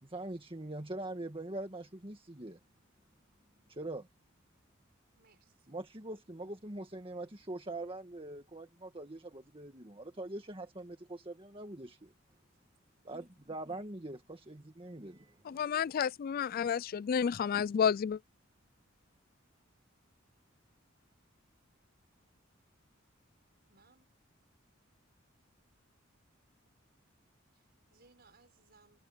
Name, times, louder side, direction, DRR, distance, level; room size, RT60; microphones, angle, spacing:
voice 1, 0.0-2.6 3.7-4.1 5.7-12.1 13.0-15.9, right 2 dB, 25° right, 1.8 m, -43 dB
voice 2, 5.1-5.8 23.7-24.1 26.6-26.8 27.5-29.0, right 4 dB, 55° right, 6.2 m, -66 dB
voice 3, 15.5-18.2, left 7 dB, 45° left, 0.3 m, -31 dB
head